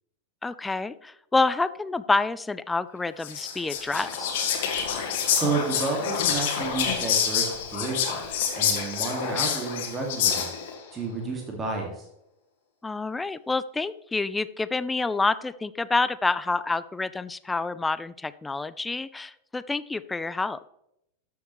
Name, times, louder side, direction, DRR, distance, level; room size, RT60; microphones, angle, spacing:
voice 1, 0.4-4.3 12.8-20.6, left 3 dB, 10° left, 16 dB, 0.4 m, -28 dB
Whispering, 3.2-10.8, left 7 dB, 50° left, 1.8 m, -27 dB
voice 2, 5.3-10.5 10.9-12.0, right 4 dB, 20° right, 1 dB, 2.1 m, -31 dB
12.5 x 7.0 x 3.2 m, 0.80 s
figure-of-eight pair, 90°, 0 cm